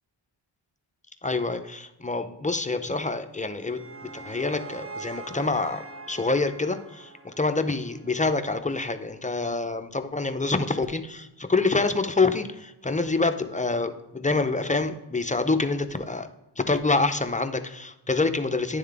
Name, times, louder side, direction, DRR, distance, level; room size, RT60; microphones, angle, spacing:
voice 1, 1.2-16.3 16.6-18.8, left 3 dB, 15° left, 8 dB, 0.5 m, -26 dB
sound 1, 3.3-8.5, right 3 dB, 25° right, 1.0 m, -43 dB
10.5 x 3.6 x 3.4 m, 0.98 s
cardioid pair, 55°, 48 cm